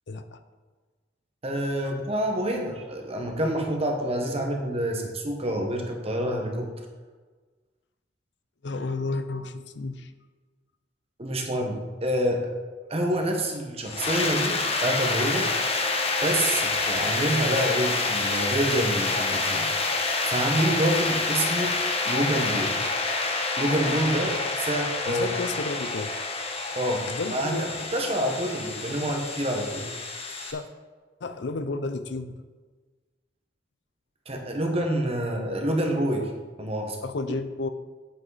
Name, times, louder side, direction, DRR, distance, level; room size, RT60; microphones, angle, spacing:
voice 1, 0.1-0.4 1.8-1.9 8.6-10.1 25.1-26.1 27.1-27.7 30.5-30.6 31.2-32.4 37.0-37.7, left 3 dB, 70° left, 10 dB, 0.6 m, -32 dB
voice 2, 1.4-6.7 11.2-12.5 12.9-15.5 16.2-19.7 19.9-21.8 22.0-22.8 23.6-25.3 26.7-29.9 30.3-30.5 34.3-36.3 36.6-37.0, right 1 dB, 35° right, 2 dB, 1.3 m, -27 dB
sound 1, 13.8-30.5, left 3 dB, 35° left, 1.0 m, -28 dB
8.4 x 8.0 x 4.1 m, 1.4 s
head